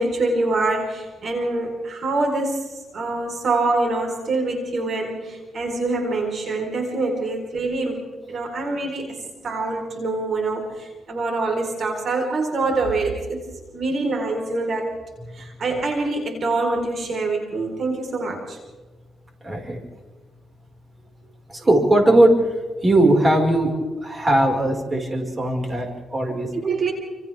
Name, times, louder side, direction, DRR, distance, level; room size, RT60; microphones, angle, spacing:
voice 1, 0.0-2.6 2.9-9.2 9.4-13.4 13.7-14.9 15.3-18.6 26.5-26.9, right 2 dB, 55° right, 2 dB, 4.5 m, -25 dB
voice 2, 19.4-19.8 21.5-22.5 22.8-26.5, right 1 dB, 25° right, 1 dB, 5.4 m, -19 dB
30.0 x 27.0 x 3.6 m, 1.3 s
cardioid pair, 100°, 0 cm